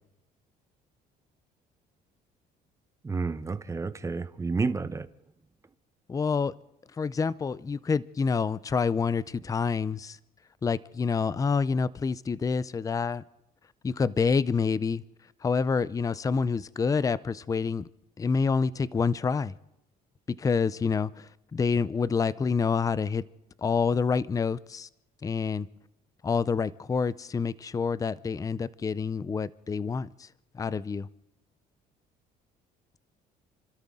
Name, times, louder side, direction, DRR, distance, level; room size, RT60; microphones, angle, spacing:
voice 1, 3.0-5.1, right 4 dB, 20° right, 0.8 m, -30 dB
voice 2, 6.1-6.5 7.0-10.2 10.6-13.2 13.8-15.0 15.4-17.9 18.2-19.5 20.4-23.2 23.6-24.9 25.2-25.7 26.2-30.3 30.5-31.1, left 5 dB, 20° left, 0.5 m, -27 dB
30.0 x 13.0 x 3.7 m
cardioid pair, 110°, 17 cm